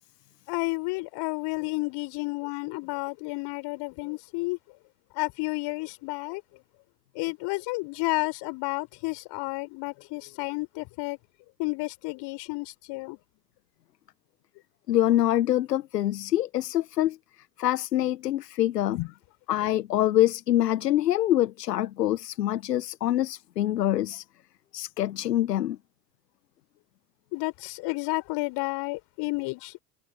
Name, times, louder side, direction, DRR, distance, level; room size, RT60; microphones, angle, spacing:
voice 1, 0.5-4.6 5.1-6.4 7.2-11.2 11.6-13.2 18.9-19.1 27.3-29.7, left 26 dB, 60° left, 5.5 m, -31 dB
voice 2, 14.9-17.2 17.6-19.0 19.5-24.2 24.7-25.8, left 13 dB, 80° left, 1.0 m, -25 dB
figure-of-eight pair, 65°, 48 cm